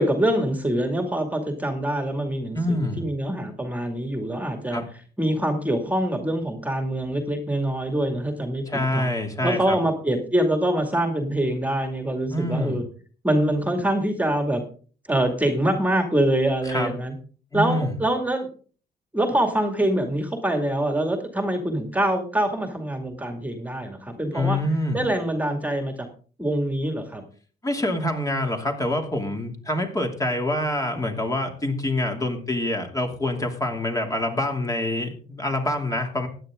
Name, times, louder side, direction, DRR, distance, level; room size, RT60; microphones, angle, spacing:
voice 1, 0.0-4.8 5.2-9.1 9.4-12.8 13.2-14.6 15.1-17.1 17.5-18.5 19.1-24.6 24.9-26.1 26.4-27.2, right 1 dB, 10° right, 5 dB, 2.3 m, -24 dB
voice 2, 2.5-3.0 4.7-4.8 8.7-9.8 12.3-12.8 16.7-16.9 17.5-17.9 24.3-25.0 27.6-36.3, left 1 dB, 20° left, 3 dB, 2.7 m, -26 dB
15.5 x 10.5 x 3.7 m, 0.41 s
cardioid pair, 105°, 18 cm